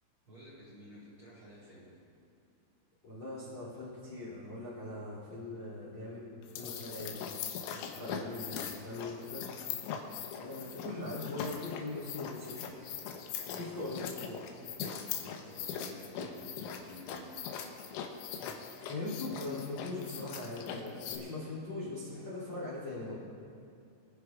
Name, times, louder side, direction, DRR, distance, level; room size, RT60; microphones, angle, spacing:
voice 1, 0.3-1.9 8.0-8.3 13.4-14.0 14.8-18.0, equal, 30° right, -7 dB, 3.2 m, -53 dB
voice 2, 3.0-6.3 6.5-7.3 7.7-9.5 10.4-12.8 13.5-14.6 18.8-23.1, left 2 dB, 35° left, -6 dB, 2.8 m, -41 dB
sound 1, 6.4-21.2, left 7 dB, 80° left, 3.5 m, -41 dB
25.5 x 11.5 x 2.4 m, 2.4 s
omnidirectional pair, 5.8 m